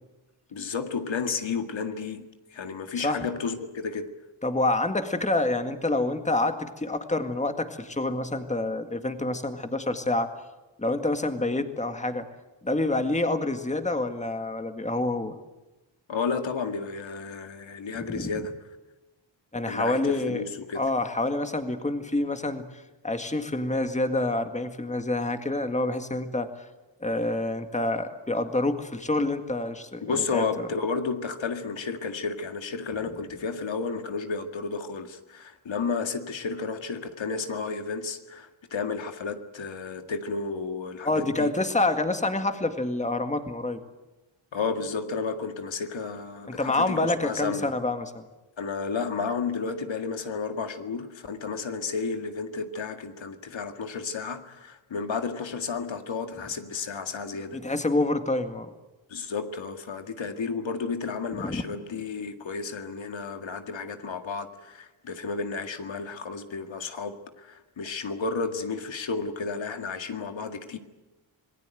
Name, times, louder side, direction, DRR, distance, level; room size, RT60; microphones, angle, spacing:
voice 1, 0.5-4.1 16.1-18.5 19.7-20.8 30.0-41.5 44.5-47.7 48.6-57.6 59.1-70.8, left 5 dB, 65° left, 7 dB, 2.0 m, -32 dB
voice 2, 4.4-10.3 10.8-12.3 12.6-15.3 18.0-18.3 19.5-20.4 20.7-22.7 23.0-26.7 27.0-30.6 41.0-43.8 46.5-48.2 57.5-58.7 61.3-61.6, left 2 dB, 15° left, 7 dB, 1.9 m, -27 dB
27.0 x 19.5 x 9.2 m, 1.1 s
wide cardioid pair, 115°, 48 cm